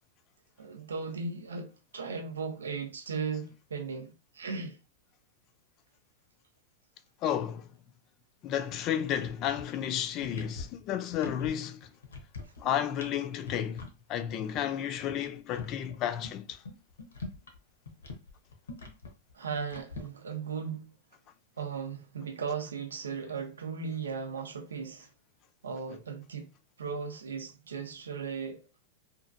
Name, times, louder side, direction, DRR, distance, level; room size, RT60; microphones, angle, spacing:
voice 1, 0.6-4.8 19.3-20.9 21.6-25.1 25.6-26.5 26.8-28.6, right 5 dB, 85° right, 0.6 m, -37 dB
voice 2, 7.2-7.7 8.4-11.9 12.6-16.6, left 10 dB, 40° left, 0.4 m, -32 dB
sound 1, 8.7-8.8 9.1-9.8 10.1-11.5 11.8-12.7 13.0-13.1 13.4-13.9 14.3-14.4 14.5-14.6 15.0-17.6 17.9-20.0, left 3 dB, 85° left, 0.8 m, -43 dB
2.9 x 2.5 x 2.5 m
hypercardioid pair, 105°, 0 cm